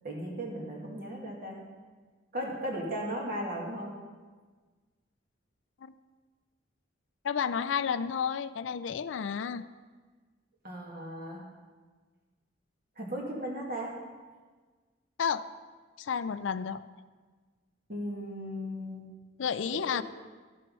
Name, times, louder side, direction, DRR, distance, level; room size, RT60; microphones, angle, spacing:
voice 1, 0.0-1.6 2.3-4.0 10.6-11.4 13.0-13.9 17.9-19.0 19.7-20.0, equal, 55° right, -1 dB, 2.3 m, -36 dB
voice 2, 7.2-9.6 15.2-15.4 16.0-16.8 19.4-20.0, left 7 dB, 75° left, 14 dB, 0.4 m, -31 dB
12.5 x 7.6 x 5.4 m, 1.4 s
head